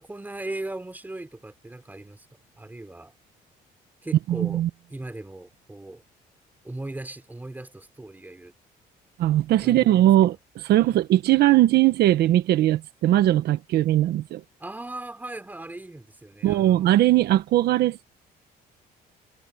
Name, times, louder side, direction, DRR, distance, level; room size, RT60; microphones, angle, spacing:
voice 1, 0.0-2.3 2.6-3.1 4.0-4.6 4.9-6.0 6.6-8.5 9.6-10.1 10.8-11.0 14.6-17.0, right 2 dB, 10° right, 3.5 m, -38 dB
voice 2, 4.3-4.7 9.2-14.4 16.4-18.0, right 14 dB, 70° right, 1.2 m, -20 dB
cardioid pair, 110°, 17 cm